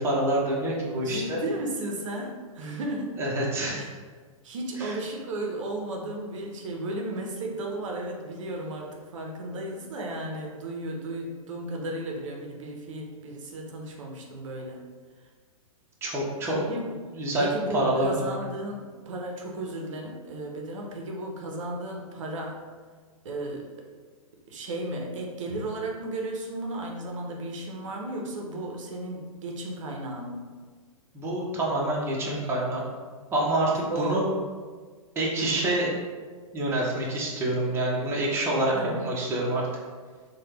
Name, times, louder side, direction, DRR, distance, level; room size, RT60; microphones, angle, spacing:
voice 1, 0.0-1.4 3.2-3.8 4.8-4.9 16.0-16.6 17.1-18.3 31.1-32.8 33.3-34.3 35.2-35.9 36.5-39.6, right 1 dB, 15° right, -4 dB, 0.6 m, -27 dB
voice 2, 1.0-3.1 3.8-3.9 4.4-14.8 16.5-16.9 17.4-22.6 23.2-23.7 24.5-30.5 33.9-34.3 38.7-39.1, right 1 dB, 60° right, 0 dB, 0.6 m, -34 dB
3.2 x 2.1 x 3.0 m, 1.5 s
hypercardioid pair, 115°, 18 cm